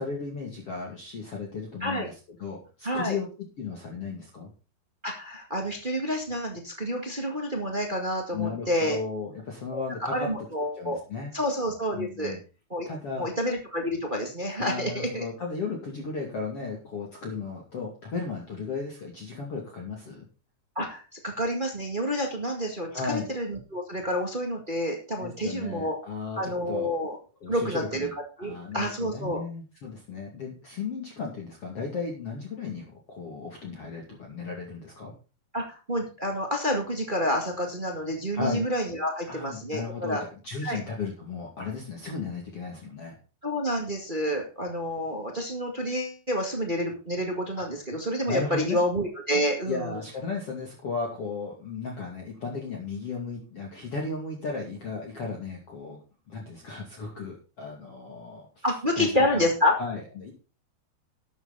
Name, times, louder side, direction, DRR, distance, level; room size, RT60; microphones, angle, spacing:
voice 1, 0.0-3.3 3.6-4.5 8.3-10.3 10.7-11.3 12.0-12.4 12.9-13.3 14.6-20.3 22.9-23.3 25.2-26.9 27.4-28.1 28.4-35.1 38.3-38.6 39.3-43.2 48.3-48.8 49.7-56.0 56.3-58.6 59.0-59.5 59.8-60.3, left 4 dB, 40° left, 0 dB, 2.9 m, -35 dB
voice 2, 2.8-3.1 5.0-9.0 9.7-11.0 11.3-12.3 12.7-12.9 13.2-15.2 20.7-26.0 26.4-27.2 27.5-28.1 28.4-29.4 35.5-40.2 40.6-40.8 43.4-49.9 58.6-59.8, equal, 30° right, 2 dB, 0.9 m, -29 dB
12.5 x 9.6 x 4.1 m, 0.33 s
omnidirectional pair, 4.6 m